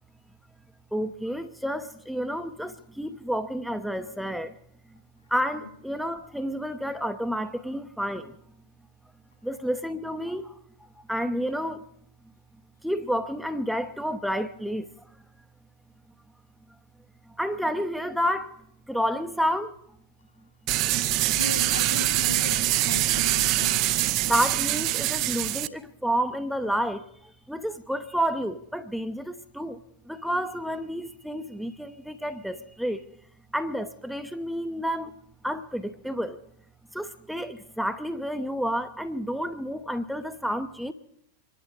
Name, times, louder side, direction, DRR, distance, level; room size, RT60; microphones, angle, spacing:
voice 1, 0.9-4.5 5.3-8.3 9.4-11.9 12.8-14.9 17.4-18.5 18.9-19.8 24.3-33.1 33.5-35.2 35.4-36.4 36.9-40.9, equal, ahead, 0.8 m, -30 dB
sound 1, 20.7-25.7, right 15 dB, 40° right, 0.7 m, -24 dB
voice 2, 21.3-24.0, left 4 dB, 70° left, 4.6 m, -37 dB
26.0 x 11.0 x 4.9 m
figure-of-eight pair, 90°, 0 cm